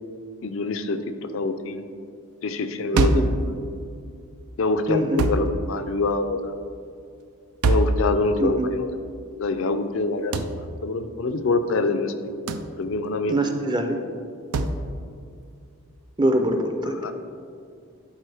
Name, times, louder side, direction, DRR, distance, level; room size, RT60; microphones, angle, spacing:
voice 1, 0.4-1.8 2.4-3.2 4.6-6.6 7.6-8.9 9.4-12.1 12.8-13.4 16.9-17.1, left 3 dB, 60° left, 9 dB, 0.5 m, -25 dB
voice 2, 2.9-3.3 4.9-5.2 8.4-8.7 13.3-14.0 16.2-17.1, right 1 dB, 20° right, 5 dB, 0.5 m, -24 dB
sound 1, 3.0-3.4 5.2-5.5 7.6-8.0 10.3-10.6 12.5-12.7 14.5-14.8, right 2 dB, 90° right, 0.4 m, -22 dB
12.0 x 4.0 x 3.5 m, 2.3 s
head